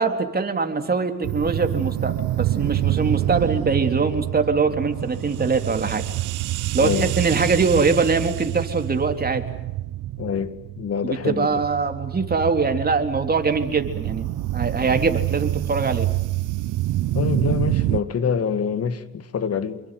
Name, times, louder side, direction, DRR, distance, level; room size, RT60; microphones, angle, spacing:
voice 1, 0.0-6.0 6.7-9.4 11.0-14.3 14.5-16.1, right 4 dB, 30° right, 3.8 m, -22 dB
sound 1, 1.2-18.0, right 15 dB, 85° right, 0.9 m, -27 dB
voice 2, 6.8-7.1 10.2-11.6 17.1-19.8, left 7 dB, 50° left, 2.2 m, -26 dB
27.5 x 23.5 x 8.0 m
cardioid pair, 90°, 30 cm